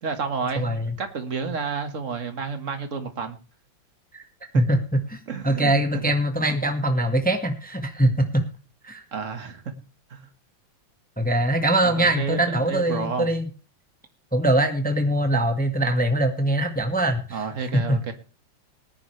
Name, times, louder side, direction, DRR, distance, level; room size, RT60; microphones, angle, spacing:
voice 1, 0.0-3.4 5.3-6.1 9.1-9.7 10.1-10.2 11.8-13.3 17.3-18.1, right 5 dB, 40° right, 8 dB, 1.9 m, -30 dB
voice 2, 0.5-0.9 4.1-4.3 4.5-4.8 5.1-8.3 8.8-9.0 11.2-13.5 14.3-17.4 17.7-18.0, right 1 dB, 5° left, 5 dB, 1.4 m, -22 dB
19.0 x 10.5 x 3.3 m, 0.33 s
omnidirectional pair, 2.1 m